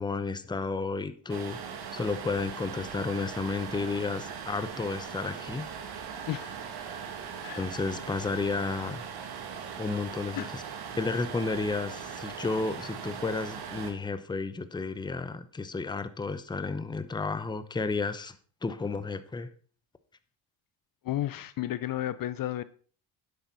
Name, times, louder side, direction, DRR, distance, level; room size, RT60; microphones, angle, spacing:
voice 1, 0.0-1.6 1.9-5.7 7.6-9.0 9.8-10.6 11.0-18.4 18.6-19.5, left 4 dB, 10° left, 0.8 m, -32 dB
sound 1, 1.3-13.9, right 7 dB, 60° right, 2.0 m, -40 dB
voice 2, 21.0-22.6, left 13 dB, 50° left, 0.7 m, -32 dB
10.5 x 8.3 x 4.1 m
cardioid pair, 95°, 44 cm